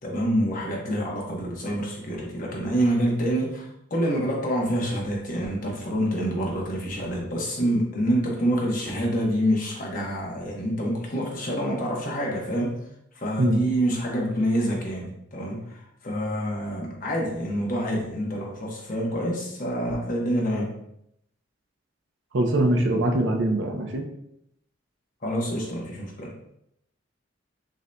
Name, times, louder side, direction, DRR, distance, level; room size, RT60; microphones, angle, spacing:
voice 1, 0.0-12.8 13.1-20.7 25.2-26.3, equal, 45° left, -2 dB, 1.0 m, -27 dB
voice 2, 22.3-24.0, right 1 dB, 75° right, 3 dB, 0.6 m, -22 dB
6.2 x 2.7 x 2.2 m, 0.77 s
head